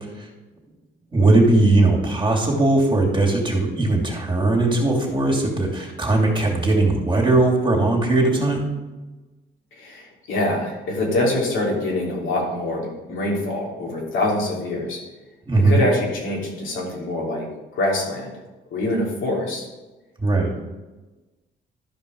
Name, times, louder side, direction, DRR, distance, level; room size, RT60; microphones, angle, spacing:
voice 1, 1.1-8.7 15.5-15.8 20.2-20.5, right 2 dB, 25° right, -2 dB, 2.9 m, -19 dB
voice 2, 9.7-15.0 15.7-17.5 17.7-18.3 18.7-19.7, left 1 dB, 80° left, -3 dB, 3.3 m, -24 dB
13.0 x 5.3 x 5.3 m, 1.1 s
cardioid pair, 90°, 20 cm